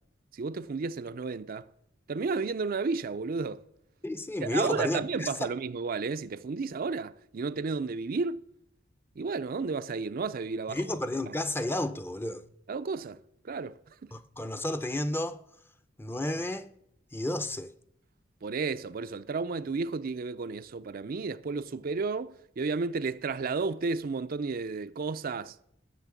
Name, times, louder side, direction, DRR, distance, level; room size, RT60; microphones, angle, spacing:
voice 1, 0.3-1.7 2.1-3.6 4.4-8.4 9.2-10.9 11.3-11.4 12.7-14.1 18.4-25.6, right 4 dB, 50° right, 0.5 m, -32 dB
voice 2, 4.0-5.5 10.7-12.4 14.1-15.4 16.0-16.7 17.1-17.7, left 1 dB, 10° left, 0.6 m, -32 dB
15.5 x 6.6 x 8.2 m
head